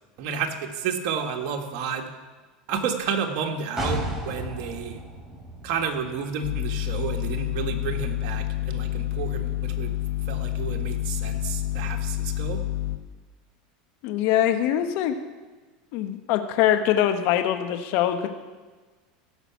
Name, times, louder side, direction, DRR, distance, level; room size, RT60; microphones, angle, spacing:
voice 1, 0.2-2.1 2.7-5.0 5.6-10.0 10.3-12.6, right 6 dB, 60° right, 3 dB, 1.7 m, -31 dB
sound 1, 3.8-7.5 7.9-8.0, equal, 10° right, 3.4 m, -34 dB
sound 2, 6.4-13.0, left 16 dB, 85° left, 1.0 m, -28 dB
voice 2, 14.0-15.1 15.9-18.3, left 11 dB, 60° left, 7 dB, 1.0 m, -23 dB
16.0 x 5.8 x 7.1 m, 1.3 s
supercardioid pair, 115°, 4 cm